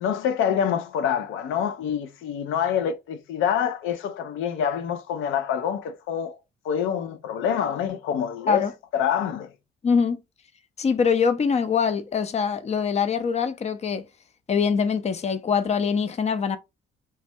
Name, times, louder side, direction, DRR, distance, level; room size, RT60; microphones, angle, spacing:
voice 1, 0.0-6.4 6.6-9.5, left 8 dB, 85° left, 0.4 m, -26 dB
voice 2, 9.8-10.2 10.8-14.0 14.5-16.6, left 6 dB, 35° left, 0.5 m, -23 dB
3.2 x 2.1 x 2.6 m
cardioid pair, 90°, 20 cm